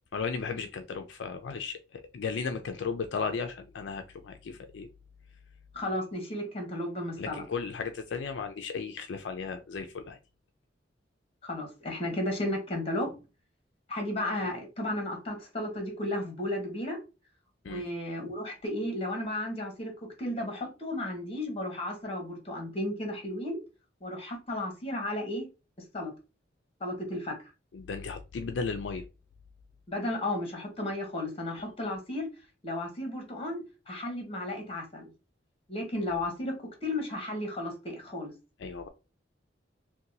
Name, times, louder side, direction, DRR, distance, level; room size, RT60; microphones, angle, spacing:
voice 1, 0.1-4.9 7.2-10.2 17.6-17.8 27.7-29.1 31.6-31.7 38.6-38.9, left 5 dB, 75° left, 0.4 m, -35 dB
voice 2, 5.7-7.4 11.4-13.2 13.9-17.0 17.6-23.6 24.0-25.5 25.9-26.1 26.8-27.4 29.9-32.3 32.6-33.6 33.9-35.1 35.7-38.3, left 1 dB, 35° left, 1.1 m, -34 dB
2.8 x 2.2 x 3.8 m
head